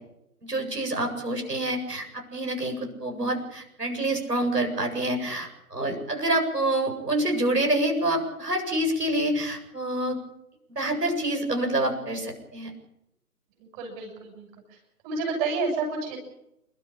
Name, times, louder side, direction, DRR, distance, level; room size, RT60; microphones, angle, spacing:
voice 1, 0.4-10.2 10.8-12.7, right 1 dB, 85° right, 3 dB, 8.0 m, -27 dB
voice 2, 13.6-14.8 15.0-16.2, right 4 dB, 20° right, 1 dB, 7.3 m, -30 dB
29.0 x 13.0 x 8.8 m, 0.83 s
figure-of-eight pair, 140°, 47 cm